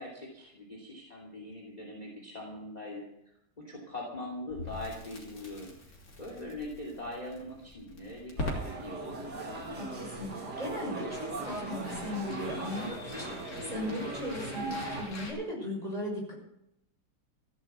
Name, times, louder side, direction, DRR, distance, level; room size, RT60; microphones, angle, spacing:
voice 1, 0.0-3.0 3.6-5.9 6.2-9.1, left 1 dB, 20° left, 0 dB, 2.8 m, -42 dB
Crackle, 4.5-15.3, left 1 dB, 45° left, 3.5 m, -44 dB
sound 1, 8.4-15.0, right 2 dB, 50° right, 2.9 m, -39 dB
voice 2, 9.7-16.3, left 1 dB, 15° right, -2 dB, 6.0 m, -37 dB
15.0 x 11.0 x 6.8 m, 0.80 s
omnidirectional pair, 2.3 m